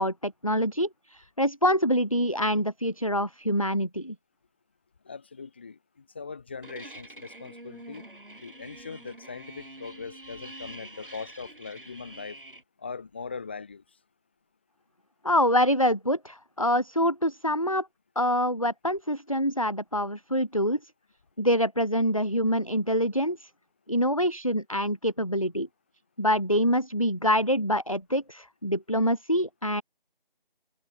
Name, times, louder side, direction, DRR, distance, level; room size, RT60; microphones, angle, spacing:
voice 1, 0.0-4.2 15.2-17.9 18.2-20.8 21.4-23.5 23.9-25.7 26.2-29.8, equal, 35° left, 0.6 m, -25 dB
voice 2, 5.0-8.0 8.4-12.4 12.8-14.0, left 5 dB, 10° left, 3.3 m, -40 dB
sound 1, 6.6-12.6, right 1 dB, 65° right, 6.2 m, -46 dB
figure-of-eight pair, 170°, 29 cm